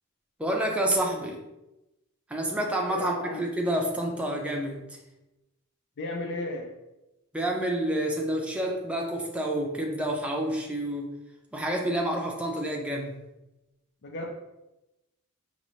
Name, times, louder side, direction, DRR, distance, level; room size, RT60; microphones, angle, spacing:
voice 1, 0.4-1.4 2.3-4.9 7.3-11.1 11.5-13.2, right 1 dB, 5° right, 0 dB, 0.5 m, -28 dB
voice 2, 2.9-3.4 6.0-6.7 14.0-14.3, left 2 dB, 55° left, 2 dB, 0.5 m, -34 dB
5.2 x 2.5 x 3.1 m, 0.97 s
head